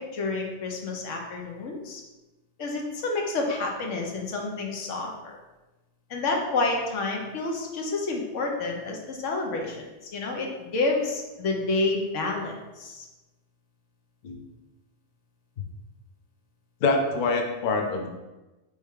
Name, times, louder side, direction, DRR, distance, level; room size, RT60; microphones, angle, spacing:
voice 1, 0.0-2.0 2.6-5.4 6.1-9.9 10.1-13.0, left 3 dB, 85° left, 1 dB, 1.1 m, -29 dB
voice 2, 16.8-18.1, left 3 dB, 50° left, 3 dB, 0.6 m, -25 dB
4.1 x 3.5 x 3.6 m, 1.1 s
omnidirectional pair, 1.3 m